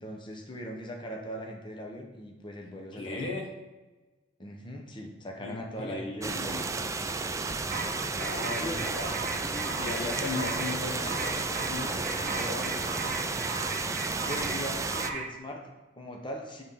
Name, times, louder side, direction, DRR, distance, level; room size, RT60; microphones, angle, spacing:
voice 1, 0.0-3.3 4.4-6.6 8.6-8.9 14.3-16.6, equal, 25° left, 1 dB, 0.8 m, -40 dB
voice 2, 2.9-3.5 5.4-6.7 8.1-9.1 9.4-13.2, left 3 dB, 80° left, 0 dB, 1.4 m, -37 dB
sound 1, 6.2-15.1, right 3 dB, 15° right, 0.4 m, -32 dB
sound 2, 7.7-15.4, right 3 dB, 50° right, 0.8 m, -37 dB
8.7 x 3.8 x 5.6 m, 1.2 s
head